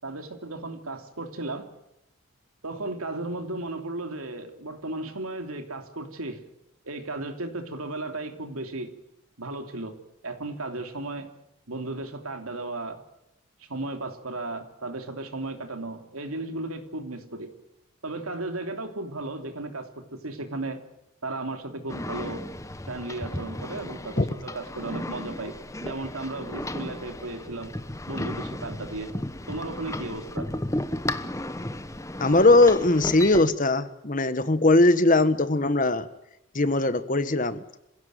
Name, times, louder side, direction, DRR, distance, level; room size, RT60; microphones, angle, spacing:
voice 1, 0.0-1.7 2.6-6.5 6.8-8.9 9.4-10.0 10.2-11.3 11.7-13.0 13.6-17.5 18.0-20.8 21.2-22.5 22.9-27.8 28.1-29.2 29.5-30.6, right 2 dB, 85° right, 6 dB, 3.1 m, -35 dB
sound 1, 21.9-33.4, left 1 dB, 15° left, 1.0 m, -34 dB
voice 2, 32.2-36.1 36.5-37.6, left 2 dB, 40° left, 13 dB, 1.3 m, -20 dB
26.5 x 16.5 x 9.3 m, 0.85 s
head